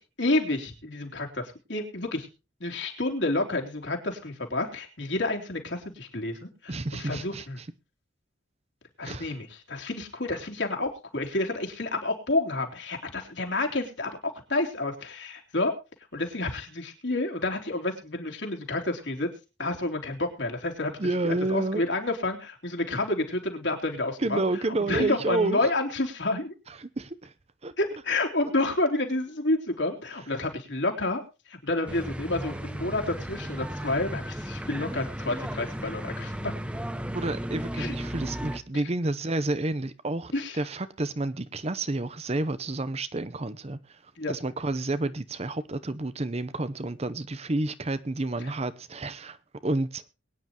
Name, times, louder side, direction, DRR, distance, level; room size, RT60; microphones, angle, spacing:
voice 1, 0.2-2.3 2.6-7.6 9.0-15.7 16.1-19.3 19.6-20.9 21.2-24.4 24.9-26.5 27.8-31.2 31.5-36.5 37.8-37.9 40.3-40.6 44.2-44.3 48.4-48.5, left 2 dB, 65° left, 3.3 m, -29 dB
voice 2, 6.7-7.7 9.0-9.3 21.0-21.8 24.2-25.6 26.8-27.3 27.6-27.7 37.1-44.0 44.3-49.4 49.6-50.0, right 2 dB, 35° right, 0.7 m, -30 dB
sound 1, 31.9-38.6, equal, 5° right, 1.1 m, -35 dB
22.5 x 9.8 x 2.9 m
head